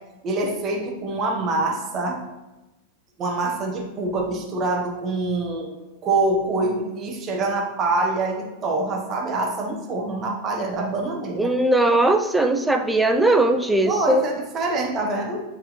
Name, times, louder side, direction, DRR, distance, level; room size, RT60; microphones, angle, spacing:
voice 1, 0.2-2.2 3.2-5.7 6.0-11.5 13.9-15.4, right 2 dB, 30° right, 1 dB, 1.2 m, -25 dB
voice 2, 11.4-14.2, right 2 dB, 5° right, 6 dB, 0.5 m, -19 dB
8.7 x 4.6 x 3.2 m, 1.1 s
figure-of-eight pair, 90°, 0 cm